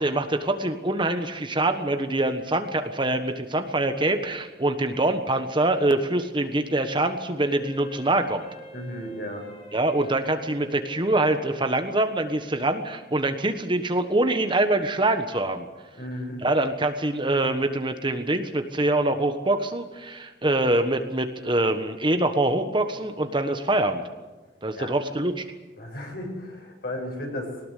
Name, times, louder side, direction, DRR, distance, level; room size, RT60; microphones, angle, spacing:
voice 1, 0.0-8.4 9.7-15.7 16.4-24.0 24.6-25.4, right 2 dB, 25° right, 7 dB, 1.4 m, -24 dB
Wind instrument woodwind instrument, 7.4-11.7, left 1 dB, 35° left, 4.3 m, -46 dB
voice 2, 8.7-9.4 16.0-16.5 24.7-25.0 25.8-27.6, left 1 dB, 60° left, 1 dB, 7.5 m, -34 dB
22.0 x 19.0 x 8.5 m, 1.2 s
head